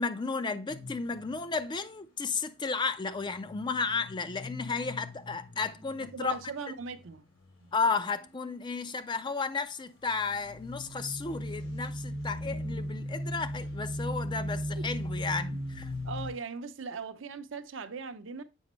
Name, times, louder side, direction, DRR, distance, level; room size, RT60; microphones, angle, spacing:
voice 1, 0.0-6.4 7.7-15.9, left 4 dB, 25° left, 0.4 m, -33 dB
sound 1, 0.7-1.6 3.2-7.7 8.1-8.5 10.0-16.3, equal, 85° left, 3.3 m, -38 dB
voice 2, 6.0-7.3 7.6-7.7 15.5-15.6 16.0-18.4, right 4 dB, 65° right, 0.6 m, -39 dB
7.0 x 5.1 x 3.0 m
head